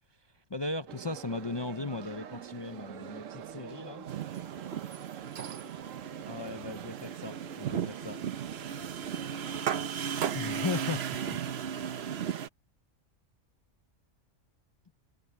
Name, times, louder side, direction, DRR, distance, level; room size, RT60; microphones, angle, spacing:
voice 1, 0.5-4.1 6.3-8.2 10.3-11.0 11.8-11.9, left 3 dB, 35° left, 0.4 m, -37 dB
sound 1, 0.9-9.6, right 9 dB, 85° right, 1.2 m, -46 dB
sound 2, 4.1-12.5, right 8 dB, 60° right, 1.0 m, -35 dB
voice 2, 4.2-6.3 9.1-10.9, equal, 15° right, 6.6 m, -64 dB
omnidirectional pair, 1.3 m